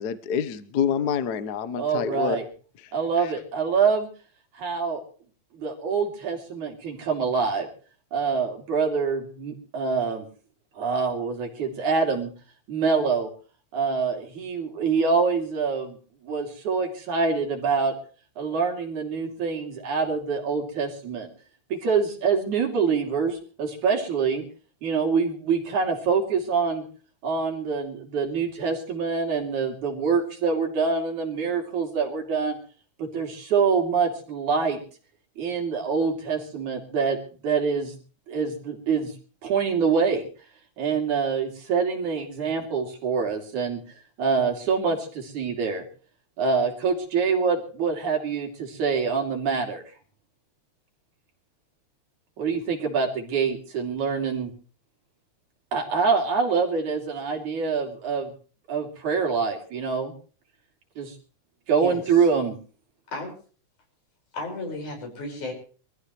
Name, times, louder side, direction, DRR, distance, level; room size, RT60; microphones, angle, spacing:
voice 1, 0.0-2.4 3.2-3.3, left 8 dB, 70° left, 12 dB, 0.9 m, -27 dB
voice 2, 1.8-2.4 2.9-4.1 4.5-5.0 5.5-7.7 8.1-10.3 10.8-12.3 12.7-13.3 13.7-16.0 16.2-18.0 18.4-21.3 21.7-24.4 24.8-26.8 27.2-32.6 33.0-34.8 35.4-37.2 37.4-38.0 38.3-39.1 39.4-40.3 40.8-43.8 44.2-45.8 46.4-49.8 52.4-54.5 55.7-58.3 58.7-60.1 61.0-61.1 61.7-62.6, right 5 dB, 80° right, 2 dB, 4.4 m, -25 dB
voice 3, 64.3-65.5, left 2 dB, 85° left, 2 dB, 6.7 m, -33 dB
24.5 x 14.5 x 3.2 m, 0.39 s
omnidirectional pair, 3.4 m